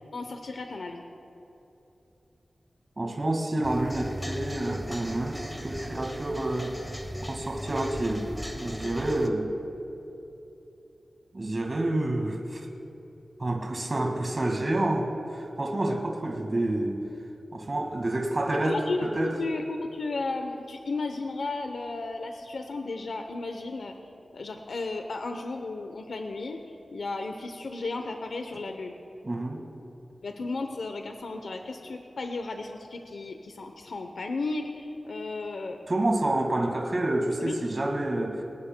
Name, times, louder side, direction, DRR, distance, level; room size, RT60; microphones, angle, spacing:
voice 1, 0.1-1.0 8.8-9.0 18.6-23.9 24.3-26.6 26.9-29.0 30.2-35.8 37.4-37.6, left 3 dB, 85° left, 5 dB, 0.8 m, -34 dB
voice 2, 3.0-6.7 7.3-8.3 8.6-9.5 11.3-12.6 13.4-17.0 17.5-19.3 29.2-29.6 35.9-38.4, right 1 dB, 40° right, 1 dB, 1.8 m, -28 dB
sound 1, 3.6-9.3, equal, 5° left, 1.0 m, -38 dB
23.0 x 19.0 x 2.2 m, 3.0 s
wide cardioid pair, 75°, 0 cm